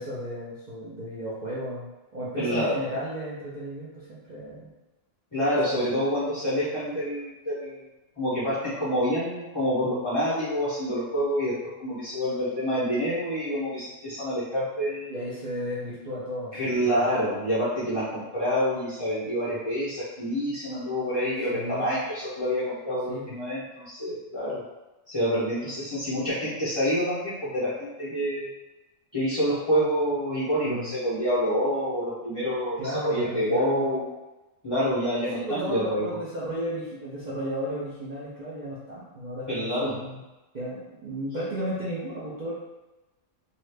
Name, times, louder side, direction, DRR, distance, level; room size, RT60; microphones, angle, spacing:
voice 1, 0.0-4.7 5.6-5.8 15.1-16.9 21.5-21.9 23.1-23.4 30.6-30.9 32.8-34.0 35.3-40.2 40.5-42.5, equal, 45° right, -10 dB, 0.7 m, -34 dB
voice 2, 2.4-2.8 5.3-7.8 8.2-15.1 16.5-24.6 25.1-28.5 29.1-34.0 34.6-36.2 39.5-40.0, equal, 30° left, -10 dB, 0.7 m, -27 dB
2.8 x 2.5 x 3.2 m, 1.1 s
omnidirectional pair, 1.3 m